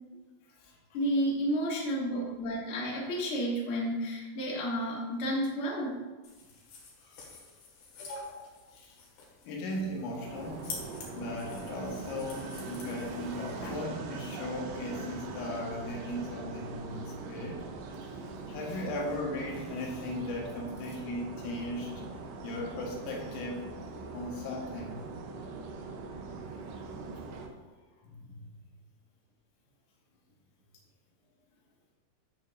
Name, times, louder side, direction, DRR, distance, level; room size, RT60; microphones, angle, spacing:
voice 1, 0.9-5.9 8.0-8.4, equal, 35° left, -6 dB, 2.4 m, -31 dB
sound 1, 6.2-13.7, left 4 dB, 65° left, 3.7 m, -49 dB
voice 2, 7.0-7.4 8.7-9.0 9.5-10.9 11.1-17.6 18.0-18.1 18.5-22.0 22.4-23.7 24.1-25.0 28.0-28.4, left 1 dB, 85° left, -1 dB, 4.1 m, -37 dB
sound 2, 10.2-27.5, right 4 dB, 75° right, 2.7 m, -42 dB
11.5 x 8.2 x 2.6 m, 1.3 s
omnidirectional pair, 5.7 m